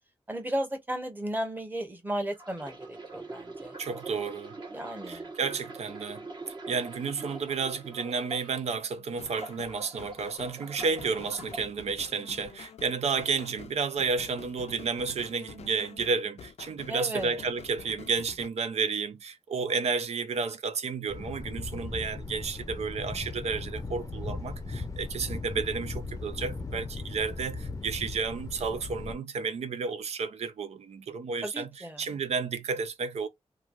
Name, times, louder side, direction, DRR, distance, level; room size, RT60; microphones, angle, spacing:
voice 1, 0.3-3.7 4.7-5.3 16.9-17.4 31.4-32.0, right 1 dB, 15° right, 1.0 m, -34 dB
sound 1, 2.3-8.8 9.2-11.6 12.3-12.5, right 3 dB, 45° right, 1.2 m, -44 dB
voice 2, 3.8-4.6 5.1-6.2 6.7-31.7 32.0-33.3, right 5 dB, 85° right, 0.5 m, -31 dB
sound 2, 9.1-18.5, left 7 dB, 90° left, 0.4 m, -47 dB
Thunder, 21.1-29.2, left 3 dB, 30° left, 0.5 m, -38 dB
3.0 x 2.3 x 2.4 m
wide cardioid pair, 115°, 11 cm